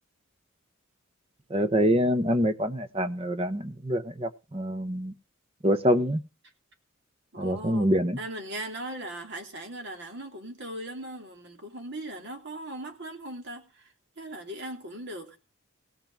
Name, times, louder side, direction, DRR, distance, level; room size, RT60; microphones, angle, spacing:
voice 1, 1.5-5.1 5.6-6.2 7.4-8.2, equal, 25° right, 1.0 m, -25 dB
voice 2, 7.3-7.9 8.2-15.4, right 1 dB, 50° right, 2.8 m, -39 dB
16.5 x 5.8 x 7.3 m
head